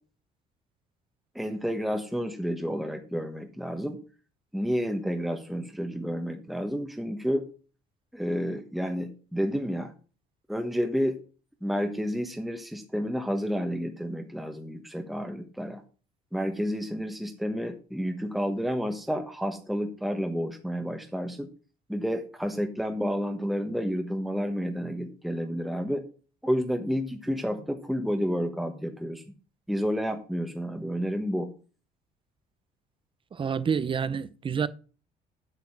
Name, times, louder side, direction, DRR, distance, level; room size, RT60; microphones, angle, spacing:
voice 1, 1.3-4.0 4.5-7.4 8.1-9.9 10.5-11.2 11.6-15.8 16.3-21.5 21.9-26.0 26.4-29.2 29.7-31.5, equal, ahead, 1.2 m, -30 dB
voice 2, 33.3-34.7, right 6 dB, 30° right, 0.7 m, -28 dB
8.1 x 7.0 x 6.0 m
cardioid pair, 110°, 17 cm